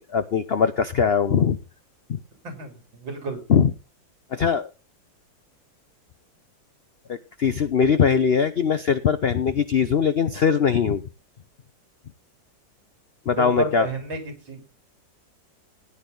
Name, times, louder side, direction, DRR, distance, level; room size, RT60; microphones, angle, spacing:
voice 1, 0.0-1.6 2.1-2.2 3.5-3.7 4.3-4.7 7.1-11.0 13.3-13.9, left 7 dB, 85° left, 11 dB, 0.5 m, -21 dB
voice 2, 3.0-3.4 13.4-14.2 14.5-14.7, right 3 dB, 90° right, 5 dB, 3.9 m, -30 dB
15.0 x 9.7 x 3.9 m, 0.30 s
omnidirectional pair, 2.0 m